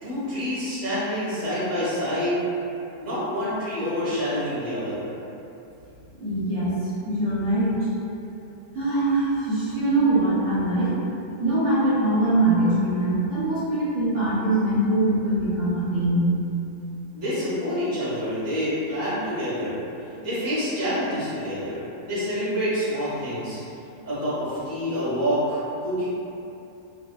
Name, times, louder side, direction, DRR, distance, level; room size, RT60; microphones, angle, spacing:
voice 1, 0.0-2.4 3.0-5.1 17.1-19.8 20.2-23.6 24.0-26.0, equal, 15° right, -12 dB, 0.7 m, -27 dB
voice 2, 6.2-6.7 7.0-7.8 8.7-11.0 11.4-16.3, right 1 dB, 60° right, -13 dB, 1.0 m, -22 dB
2.6 x 2.4 x 2.2 m, 2.8 s
omnidirectional pair, 1.7 m